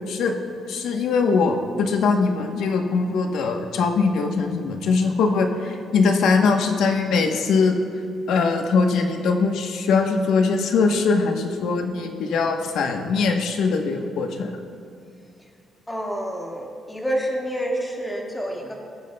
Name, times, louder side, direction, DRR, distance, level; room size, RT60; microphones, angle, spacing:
voice 1, 0.7-7.8 8.3-14.5, left 4 dB, 80° left, 4 dB, 0.9 m, -21 dB
voice 2, 15.9-18.7, equal, 10° left, -2 dB, 1.7 m, -28 dB
20.0 x 9.2 x 2.2 m, 2.4 s
cardioid pair, 130°, 0 cm